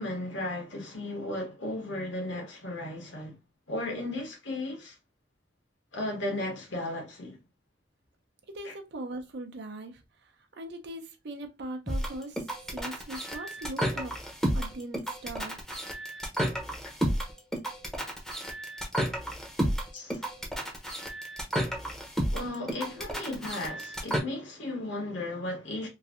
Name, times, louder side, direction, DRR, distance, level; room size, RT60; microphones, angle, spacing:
voice 1, 0.0-3.4 3.7-5.0 5.9-7.4 8.6-8.7 19.9-20.3 22.3-25.9, left 1 dB, 75° left, 1.3 m, -35 dB
voice 2, 8.5-14.1 14.5-15.6, right 1 dB, 60° right, 0.6 m, -40 dB
sound 1, 11.9-24.2, equal, 5° left, 0.7 m, -32 dB
3.1 x 2.6 x 2.4 m
head